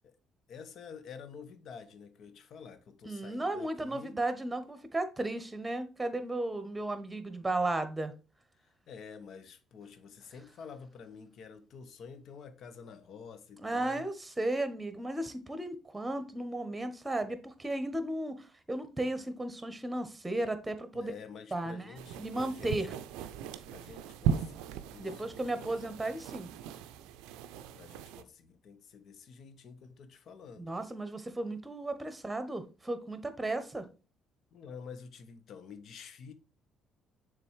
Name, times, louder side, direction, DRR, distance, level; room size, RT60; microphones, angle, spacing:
voice 1, 0.5-4.2 8.9-14.1 20.9-22.9 23.7-25.7 27.5-30.8 34.5-36.3, left 6 dB, 60° left, 0.8 m, -49 dB
voice 2, 3.0-8.1 13.6-21.1 21.5-23.0 25.0-26.5 30.6-33.8, right 2 dB, 15° right, 1.2 m, -35 dB
sound 1, 22.0-28.2, right 8 dB, 75° right, 0.4 m, -37 dB
6.8 x 3.4 x 4.7 m
hypercardioid pair, 50°, 0 cm